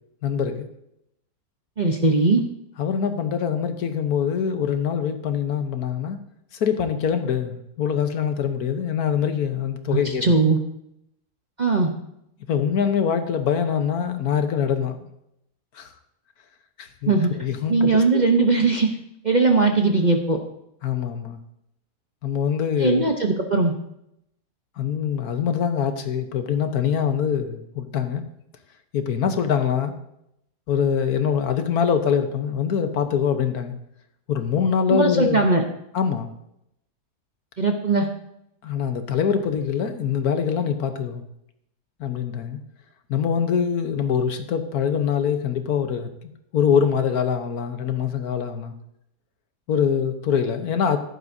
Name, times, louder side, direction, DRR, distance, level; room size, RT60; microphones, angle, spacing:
voice 1, 0.2-0.7 2.8-6.2 6.5-10.3 12.5-15.1 15.7-15.9 16.8-18.3 20.8-21.4 22.2-23.1 24.8-28.3 28.9-30.0 30.7-33.7 34.3-35.4 35.9-36.3 38.6-41.2 42.0-42.6 43.1-48.7 49.7-51.0, left 7 dB, 70° left, 8 dB, 1.4 m, -24 dB
voice 2, 1.8-2.4 10.2-10.6 11.6-11.9 17.1-17.3 17.7-18.9 19.2-20.4 22.8-23.7 34.9-35.6 37.6-38.1, right 3 dB, 35° right, 3 dB, 0.8 m, -19 dB
14.5 x 11.0 x 2.7 m, 0.78 s
omnidirectional pair, 1.7 m